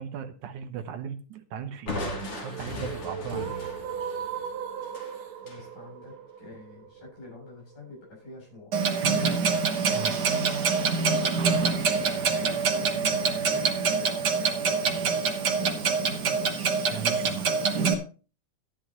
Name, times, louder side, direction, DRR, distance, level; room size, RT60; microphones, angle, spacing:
voice 1, 0.0-3.7 9.9-10.1 16.9-17.5, right 7 dB, 75° right, 9 dB, 2.3 m, -37 dB
Crushing, 1.9-5.7, left 2 dB, 45° left, 3.7 m, -37 dB
sound 1, 2.1-8.1, right 8 dB, 90° right, 2.7 m, -38 dB
voice 2, 5.4-8.8 9.2-9.4 10.9-12.6 13.3-14.0 14.4-15.2 17.5-18.0, left 3 dB, 80° left, -2 dB, 9.3 m, -46 dB
Clock, 8.7-17.9, right 5 dB, 50° right, 1.3 m, -25 dB
14.0 x 11.0 x 3.0 m, 0.35 s
omnidirectional pair, 3.6 m